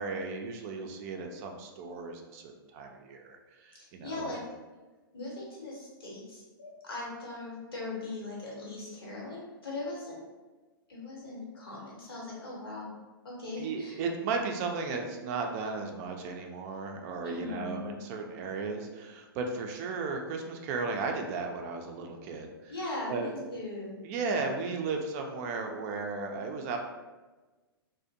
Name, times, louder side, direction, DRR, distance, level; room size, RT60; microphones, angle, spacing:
voice 1, 0.0-4.3 13.6-22.7 23.1-23.5 24.0-26.8, right 4 dB, 40° right, 3 dB, 0.4 m, -35 dB
voice 2, 3.8-4.4 5.1-10.2 10.9-12.9 13.2-14.0 17.2-18.0 22.7-23.9, left 2 dB, 80° left, -4 dB, 1.0 m, -39 dB
2.4 x 2.1 x 2.6 m, 1.2 s
hypercardioid pair, 110°, 12 cm